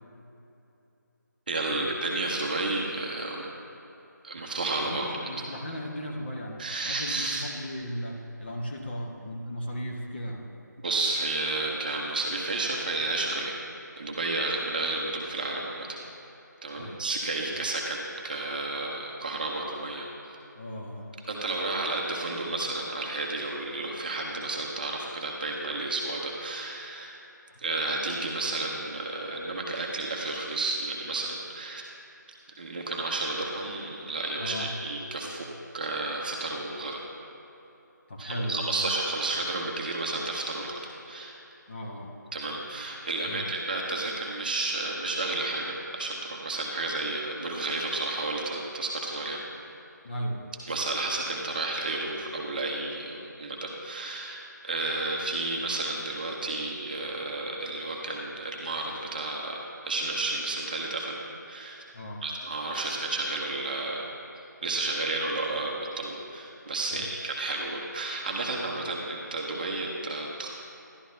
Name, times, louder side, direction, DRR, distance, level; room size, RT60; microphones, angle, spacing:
voice 1, 1.5-3.5 4.2-5.1 6.6-7.4 10.8-13.5 14.0-16.0 16.6-18.0 18.2-20.4 21.3-27.2 27.6-31.8 32.6-35.5 35.7-37.0 38.2-40.8 41.1-41.3 42.3-49.4 50.7-61.2 61.5-61.8 62.2-64.1 64.6-70.5, right 2 dB, 25° right, -1 dB, 0.8 m, -31 dB
voice 2, 4.8-10.5 16.8-17.0 20.6-21.1 34.4-34.7 38.1-38.9 41.7-42.1 43.2-43.5 50.0-50.5 61.9-62.2 66.9-67.1, equal, 35° left, 0 dB, 0.9 m, -36 dB
11.5 x 11.0 x 2.7 m, 2.9 s
figure-of-eight pair, 165°, 10 cm